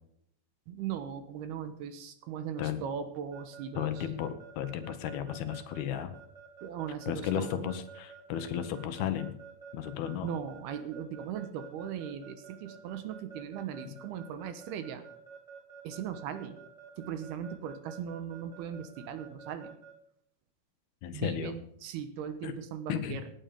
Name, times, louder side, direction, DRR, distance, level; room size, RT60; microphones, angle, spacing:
voice 1, 0.7-3.9 6.6-7.7 10.2-15.0 15.8-16.6 17.0-19.7 21.1-23.3, right 8 dB, 75° right, 10 dB, 2.9 m, -38 dB
Keyboard (musical) / Alarm, 3.3-19.9, right 6 dB, 10° right, 3.2 m, -49 dB
voice 2, 3.7-6.1 7.1-9.4 9.7-10.3 21.0-21.5 22.4-22.6 22.9-23.2, left 9 dB, 70° left, 9 dB, 2.8 m, -34 dB
18.5 x 9.1 x 5.1 m, 0.72 s
omnidirectional pair, 4.9 m